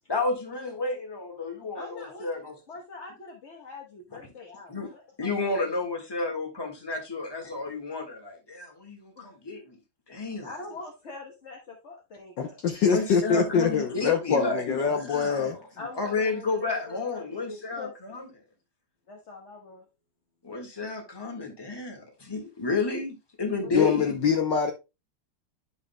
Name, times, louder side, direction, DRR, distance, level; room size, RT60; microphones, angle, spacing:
voice 1, 0.1-2.6 4.7-4.9 5.2-9.8 10.1-10.5 12.8-14.6 14.9-15.6 15.9-18.3 20.4-24.2, left 3 dB, 10° left, 1.4 m, -31 dB
voice 2, 1.7-2.3 2.7-5.5 9.1-9.3 10.4-12.6 15.8-17.9 19.1-19.8 23.6-23.7, left 3 dB, 40° left, 1.1 m, -43 dB
voice 3, 12.4-15.6 23.7-24.7, left 6 dB, 65° left, 1.3 m, -24 dB
11.0 x 5.6 x 2.2 m
omnidirectional pair, 2.4 m